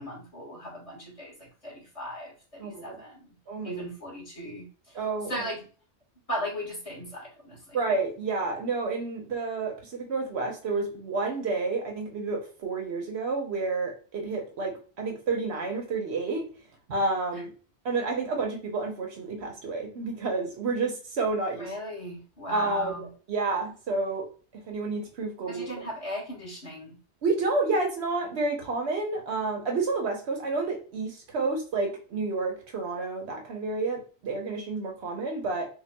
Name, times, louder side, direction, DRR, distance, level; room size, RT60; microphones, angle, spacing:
voice 1, 0.0-3.3 3.6-5.0 5.3-5.7 6.3-7.8 17.3-17.4 21.6-23.1 25.5-27.0, equal, 35° left, -4 dB, 1.6 m, -37 dB
voice 2, 2.6-3.0 3.5-3.8 4.9-5.5 7.7-16.5 16.9-17.5 17.8-21.7 22.5-24.3 24.7-25.8 27.2-35.7, right 3 dB, 80° right, 2 dB, 1.2 m, -30 dB
5.6 x 2.3 x 2.2 m, 0.39 s
omnidirectional pair, 1.1 m